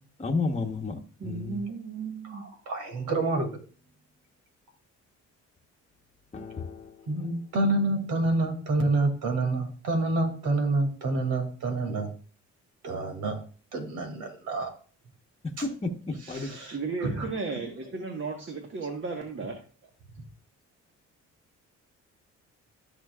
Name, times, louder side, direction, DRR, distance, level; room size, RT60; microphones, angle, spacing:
voice 1, 0.2-1.0 1.2-1.5 6.3-6.8 16.1-16.5, left 4 dB, 20° left, 1.1 m, -31 dB
voice 2, 1.2-2.4 16.7-19.6, right 4 dB, 40° right, 1.4 m, -34 dB
voice 3, 2.3-3.5 7.1-12.1 12.8-13.4 13.7-14.7 15.6-15.7 16.2-17.3, right 2 dB, 80° right, 2.6 m, -28 dB
13.5 x 6.1 x 2.4 m
cardioid pair, 90°, 30 cm